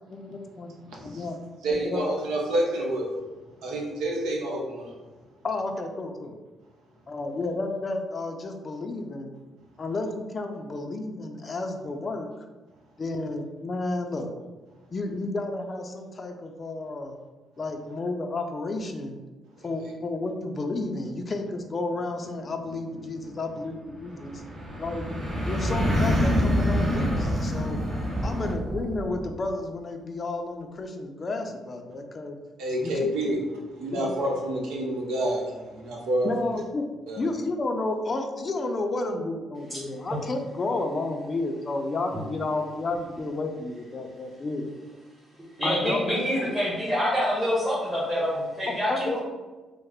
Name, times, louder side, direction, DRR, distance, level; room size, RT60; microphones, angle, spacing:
voice 1, 0.1-0.7 1.0-1.3 1.7-2.0 5.4-6.4 7.1-9.3 9.8-12.3 13.0-14.3 14.9-17.2 17.6-19.2 19.6-24.4 24.8-25.0 25.5-27.8 28.2-32.4 32.8-32.9 33.9-34.1 36.2-36.9 37.2-44.7 45.6-46.0 48.9-49.2, left 2 dB, 35° left, 4 dB, 0.4 m, -31 dB
voice 2, 0.8-1.3 1.6-3.1 3.6-4.9 19.6-19.7 24.2-24.6 32.6-33.4 33.8-36.3 37.1-37.3, right 1 dB, 90° right, -1 dB, 0.7 m, -28 dB
sound 1, 22.2-28.5, equal, 50° right, 1.2 m, -26 dB
sound 2, 25.9-29.3, right 2 dB, 25° right, 0.5 m, -35 dB
voice 3, 45.6-49.2, equal, 10° right, -7 dB, 1.0 m, -26 dB
3.2 x 2.0 x 3.5 m, 1.2 s
cardioid pair, 90°, 0 cm